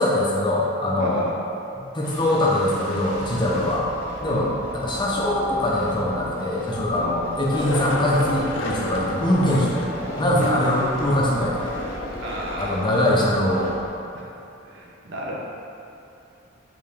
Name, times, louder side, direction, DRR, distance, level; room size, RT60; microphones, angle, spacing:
voice 1, 0.0-1.2 1.8-3.8 4.2-4.5 4.7-9.7 10.2-11.6 12.6-13.7, left 1 dB, 25° left, -4 dB, 0.5 m, -22 dB
voice 2, 0.9-1.4 3.5-3.7 4.2-4.6 6.9-7.2 10.3-10.8 12.2-12.8 14.1-14.3 14.7-15.4, right 2 dB, 65° right, -4 dB, 0.7 m, -32 dB
sound 1, 2.0-13.9, left 1 dB, 10° right, 0.9 m, -36 dB
Skateboard, 7.5-13.1, left 1 dB, 75° left, 0.5 m, -32 dB
5.1 x 2.8 x 3.5 m, 2.7 s
head